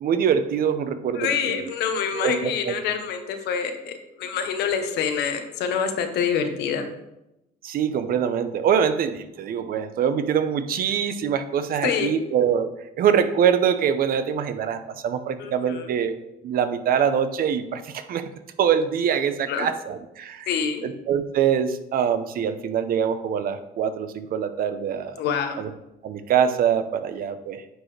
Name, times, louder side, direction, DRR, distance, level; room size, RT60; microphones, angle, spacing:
voice 1, 0.0-1.7 2.1-2.7 7.6-12.7 13.0-18.2 18.6-20.5 20.8-25.1 25.6-25.7 26.0-27.6, right 8 dB, 60° right, 10 dB, 0.8 m, -24 dB
voice 2, 1.1-6.9 11.8-12.2 15.4-15.9 19.5-19.7 20.5-20.8 25.2-25.6, left 7 dB, 80° left, 6 dB, 1.2 m, -26 dB
9.4 x 6.4 x 3.3 m, 0.90 s
cardioid pair, 110°, 17 cm